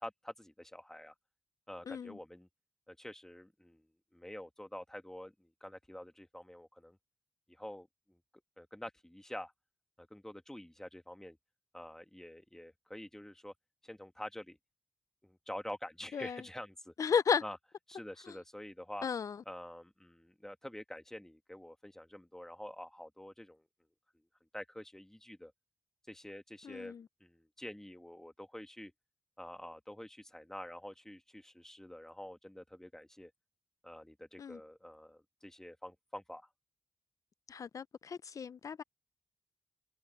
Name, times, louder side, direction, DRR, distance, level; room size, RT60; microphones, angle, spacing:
voice 1, 0.0-1.1 1.7-2.5 2.9-3.8 4.1-7.0 7.5-8.2 8.6-9.5 10.0-11.4 11.7-13.5 13.8-14.6 15.2-16.9 17.4-17.6 17.9-19.1 19.5-23.7 24.5-25.5 26.1-27.0 27.2-28.9 29.4-33.3 33.8-36.5, left 1 dB, 5° left, 1.6 m, -47 dB
voice 2, 1.9-2.2 16.1-16.4 17.0-17.4 19.0-19.4 26.6-27.1 34.4-34.6 37.5-38.8, left 6 dB, 65° left, 0.6 m, -34 dB
cardioid pair, 75°, 6 cm